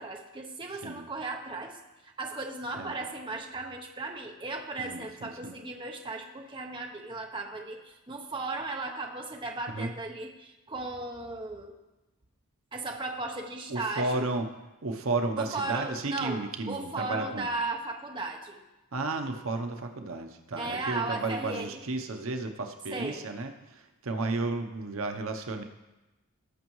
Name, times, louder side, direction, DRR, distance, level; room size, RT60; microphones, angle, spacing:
voice 1, 0.0-1.8 2.0-11.7 12.7-14.2 15.4-18.6 20.6-21.8 22.9-23.2, right 3 dB, 20° right, 2 dB, 0.8 m, -36 dB
voice 2, 4.8-5.5 9.7-9.9 13.7-14.4 14.8-17.5 18.9-25.6, right 3 dB, 70° right, 6 dB, 0.8 m, -33 dB
18.5 x 6.2 x 3.1 m, 1.0 s
head